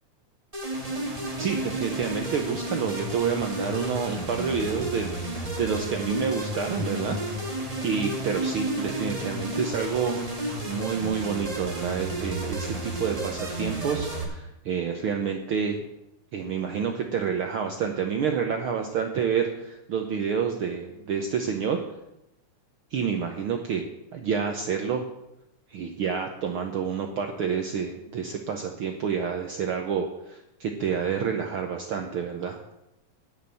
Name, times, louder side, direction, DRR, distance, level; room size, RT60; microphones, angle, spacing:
sound 1, 0.5-14.2, right 1 dB, 15° right, 1.6 m, -32 dB
voice 1, 1.4-7.2 7.8-10.2 10.6-15.8 16.3-21.8 22.9-23.8 24.1-25.0 25.7-32.6, right 6 dB, 75° right, 4 dB, 1.2 m, -28 dB
10.5 x 6.6 x 9.0 m, 0.88 s
omnidirectional pair, 3.5 m